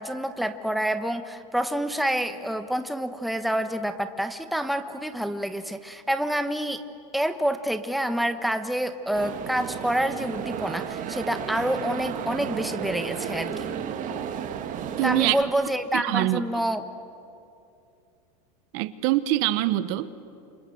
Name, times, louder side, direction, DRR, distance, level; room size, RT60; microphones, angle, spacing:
voice 1, 0.0-6.8 7.1-13.7 15.0-16.8, right 1 dB, ahead, 8 dB, 1.2 m, -27 dB
sound 1, 9.1-15.4, right 8 dB, 40° right, 2.2 m, -33 dB
voice 2, 15.0-15.4 15.9-16.4 18.7-20.1, right 16 dB, 55° right, 14 dB, 1.2 m, -24 dB
28.5 x 26.0 x 7.9 m, 2.6 s
hypercardioid pair, 115°, 21 cm